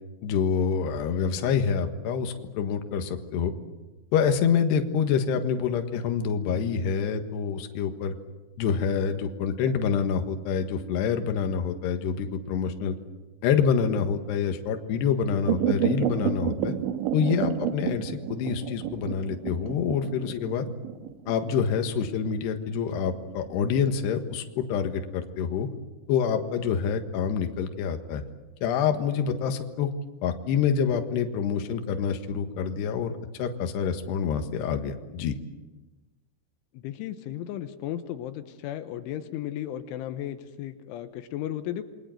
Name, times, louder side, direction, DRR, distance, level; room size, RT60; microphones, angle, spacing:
voice 1, 0.2-3.5 4.1-8.2 8.6-13.0 13.4-16.7 17.1-20.7 21.3-25.7 26.1-28.2 28.6-29.9 30.2-35.3, left 7 dB, 70° left, 6 dB, 3.5 m, -27 dB
sound 1, 15.5-24.3 24.7-24.8, right 10 dB, 80° right, 3.6 m, -30 dB
voice 2, 36.7-41.8, left 12 dB, 85° left, 9 dB, 3.5 m, -35 dB
28.0 x 23.0 x 7.8 m, 1.2 s
omnidirectional pair, 5.4 m